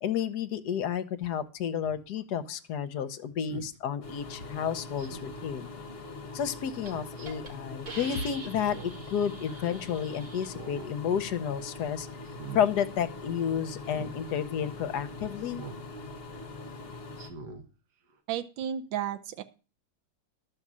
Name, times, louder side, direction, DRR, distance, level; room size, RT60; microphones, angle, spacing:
voice 1, 0.0-5.7 6.3-12.1 12.5-15.6, left 8 dB, 65° left, 11 dB, 1.2 m, -31 dB
Speech synthesizer, 1.8-2.0 3.5-3.7 5.0-5.5 6.8-7.3 8.6-9.1 9.5-9.6 10.4-10.9 11.3-11.6 12.2-12.7 13.9-14.2 15.5-15.9 16.3-16.4 17.1-17.6 18.1-18.2, right 5 dB, 65° right, 1.7 m, -44 dB
sound 1, 4.0-17.3, left 3 dB, 35° left, 1.2 m, -43 dB
Hiss, 6.3-6.5 6.9-7.0 7.3-7.5 7.9-10.5, right 3 dB, 45° right, 2.5 m, -44 dB
voice 2, 18.3-19.4, right 9 dB, 85° right, 9 dB, 1.4 m, -33 dB
12.0 x 5.4 x 7.3 m, 0.34 s
omnidirectional pair, 2.0 m